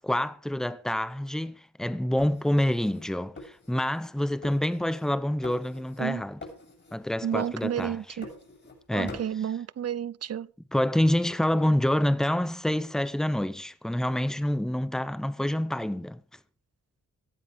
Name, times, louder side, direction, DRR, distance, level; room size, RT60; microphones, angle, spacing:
voice 1, 0.0-6.4 6.9-8.2 8.9-9.2 10.7-16.2, left 1 dB, ahead, 0.9 m, -27 dB
sound 1, 2.2-4.1 4.4-5.2 5.4-6.1 6.4-7.0 7.3-8.8 9.1-9.4, left 2 dB, 35° left, 6.7 m, -46 dB
voice 2, 7.2-8.3 8.9-10.5, right 9 dB, 50° right, 0.7 m, -31 dB
18.0 x 14.0 x 3.7 m
cardioid pair, 100°, 32 cm